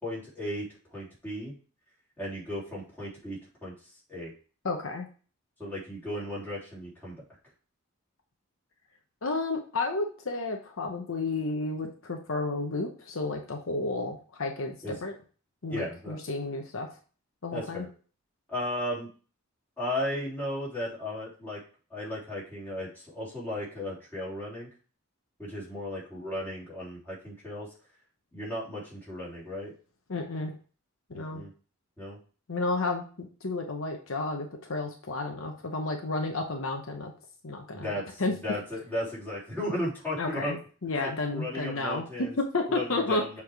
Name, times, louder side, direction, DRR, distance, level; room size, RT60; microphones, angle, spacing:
voice 1, 0.0-1.5 2.2-3.7 4.1-4.3 5.6-7.2 14.8-15.1 15.7-16.2 17.5-17.9 18.5-19.1 19.8-21.6 21.9-24.7 25.4-27.7 28.3-29.7 31.1-31.5 32.0-32.2 37.7-40.6 40.9-42.3 42.7-43.4, left 1 dB, 10° left, -7 dB, 3.3 m, -35 dB
voice 2, 4.6-5.1 9.2-15.1 15.6-16.9 17.4-17.9 30.1-30.5 31.1-31.4 32.5-37.1 37.4-37.9 38.2-38.3 40.2-43.4, left 3 dB, 70° left, 3 dB, 0.9 m, -32 dB
6.9 x 3.6 x 4.6 m, 0.38 s
head